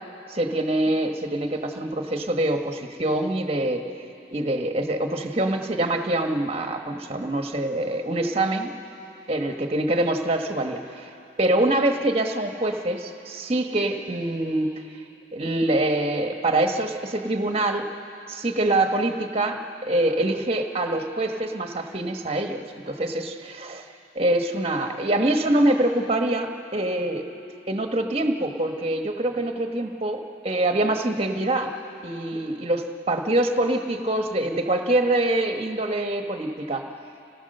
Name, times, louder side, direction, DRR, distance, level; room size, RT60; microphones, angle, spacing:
voice 1, 0.3-3.8 4.3-8.7 9.3-11.1 11.4-14.7 15.3-17.8 18.3-23.8 24.1-27.2 27.7-31.7 32.0-36.8, right 1 dB, 35° right, 4 dB, 1.2 m, -25 dB
30.0 x 17.5 x 6.6 m, 2.9 s
head